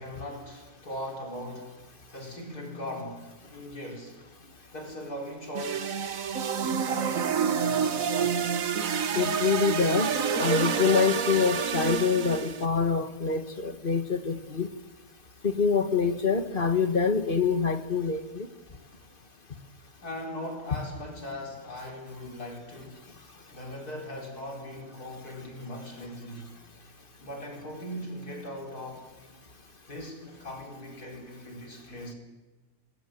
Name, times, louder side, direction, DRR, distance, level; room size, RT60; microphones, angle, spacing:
voice 1, 0.0-1.8 2.1-4.2 4.7-6.0 6.6-8.6 20.0-23.1 23.5-29.1 29.9-32.1, left 1 dB, 75° left, 5.3 m, -40 dB
sound 1, 5.5-12.7, right 7 dB, 60° right, 1.5 m, -28 dB
voice 2, 9.2-10.1 10.4-14.7 15.4-18.5, left 5 dB, 35° left, 1.7 m, -25 dB
27.0 x 20.0 x 9.1 m
omnidirectional pair, 1.6 m